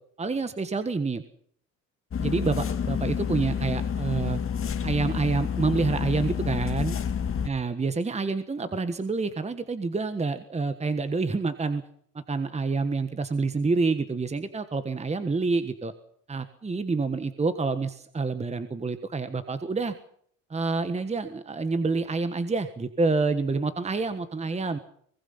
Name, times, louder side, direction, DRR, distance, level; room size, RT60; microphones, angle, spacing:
voice 1, 0.2-1.2 2.2-4.4 4.8-7.0 7.4-11.8 12.1-15.9 16.3-19.9 20.5-24.8, right 4 dB, 20° right, 11 dB, 1.5 m, -28 dB
sound 1, 2.1-7.5, left 7 dB, 40° left, 2.0 m, -29 dB
24.0 x 20.0 x 5.7 m, 0.64 s
supercardioid pair, 95°, 35 cm